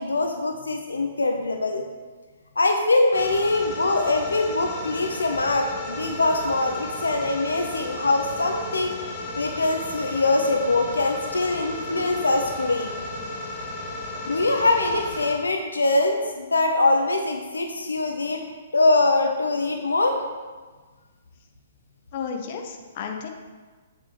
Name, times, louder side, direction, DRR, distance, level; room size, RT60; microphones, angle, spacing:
voice 1, 0.0-1.8 2.6-8.9 9.4-12.9 14.3-18.4 18.7-20.2, left 2 dB, 75° left, 4 dB, 0.7 m, -23 dB
sound 1, 3.1-15.3, left 2 dB, 20° left, 1.9 m, -34 dB
voice 2, 22.1-23.3, left 6 dB, 40° left, 3 dB, 0.9 m, -32 dB
8.2 x 7.6 x 3.1 m, 1.4 s
figure-of-eight pair, 120°, 0 cm